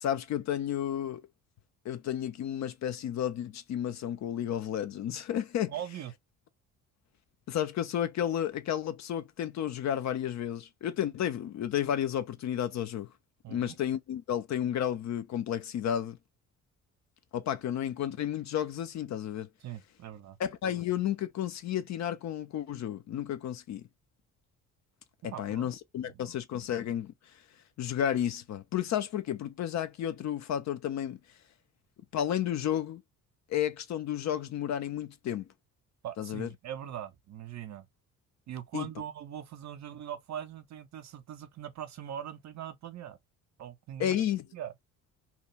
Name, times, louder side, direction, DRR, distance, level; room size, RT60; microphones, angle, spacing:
voice 1, 0.0-1.2 1.8-5.7 7.5-13.1 13.5-16.2 17.3-19.5 20.4-23.8 25.4-27.1 27.8-31.2 32.1-33.0 33.5-35.4 36.2-36.5 38.7-38.9 44.0-44.4, left 10 dB, 40° left, 0.5 m, -32 dB
voice 2, 5.7-6.1 13.4-13.8 19.6-20.4 25.3-25.7 26.0-26.3 36.0-37.9 38.5-43.2 43.6-44.2 44.5-44.7, right 10 dB, 40° right, 0.6 m, -41 dB
2.8 x 2.3 x 3.1 m
figure-of-eight pair, 45°, 42 cm